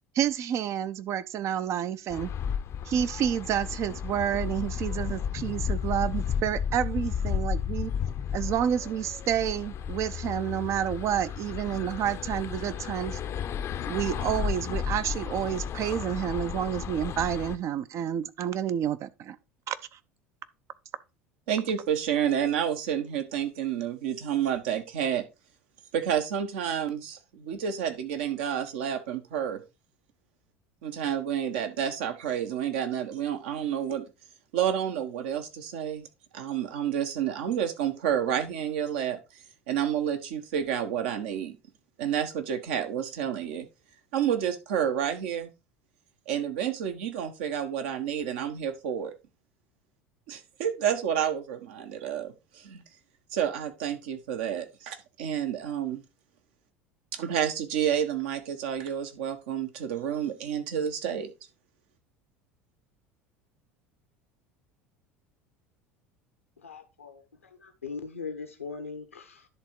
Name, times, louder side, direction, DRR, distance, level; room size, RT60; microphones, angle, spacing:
voice 1, 0.1-2.3 2.9-7.9 8.3-13.2 13.9-19.4 19.7-19.8, right 9 dB, 45° right, 0.7 m, -29 dB
sound 1, 2.1-17.6, left 7 dB, 40° left, 0.7 m, -33 dB
voice 2, 21.5-25.2 25.9-29.6 30.8-34.1 34.5-36.1 36.3-39.2 39.7-41.6 42.0-43.7 44.1-45.5 46.3-49.1 50.3-52.8 53.3-56.0 57.1-61.3, right 9 dB, 65° right, 1.3 m, -29 dB
voice 3, 66.6-69.5, left 4 dB, 90° left, 1.2 m, -40 dB
10.5 x 3.7 x 4.6 m
figure-of-eight pair, 70°, 7 cm